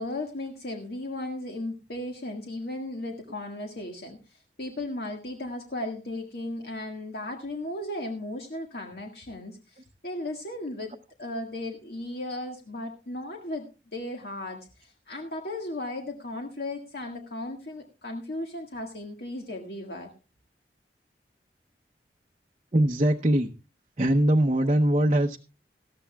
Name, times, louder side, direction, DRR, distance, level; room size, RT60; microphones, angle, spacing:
voice 1, 0.0-10.9 11.2-13.7 13.9-20.1, left 1 dB, 65° left, 2 dB, 1.8 m, -36 dB
voice 2, 22.7-23.5 24.0-25.4, right 1 dB, 35° right, 2 dB, 0.7 m, -22 dB
18.5 x 14.0 x 2.3 m, 0.32 s
head